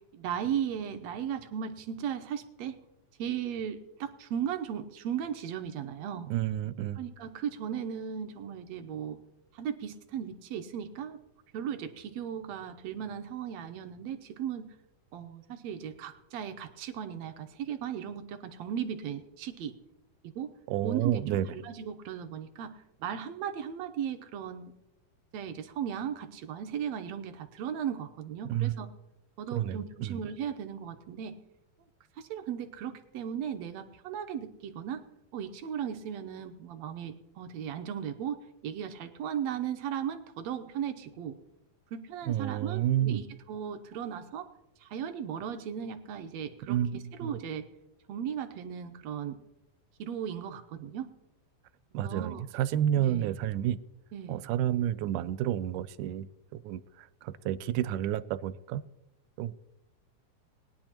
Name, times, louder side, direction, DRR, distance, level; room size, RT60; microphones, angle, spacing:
voice 1, 0.1-2.8 3.2-6.3 7.0-9.2 9.5-11.2 11.5-14.7 15.1-19.7 20.3-20.5 20.8-24.7 25.3-28.9 29.4-31.4 32.2-35.0 35.3-38.4 38.6-41.4 41.9-44.5 44.8-47.6 48.1-49.4 50.0-51.1 52.0-52.4 53.0-53.3 54.1-54.5, right 8 dB, 70° right, 8 dB, 1.8 m, -36 dB
voice 2, 6.3-7.0 20.7-21.5 28.5-28.7 29.5-30.2 42.3-43.2 46.7-47.3 51.9-53.8 54.3-58.8 59.4-59.6, right 11 dB, 90° right, 15 dB, 2.1 m, -30 dB
20.5 x 10.5 x 2.9 m, 0.92 s
omnidirectional pair, 3.5 m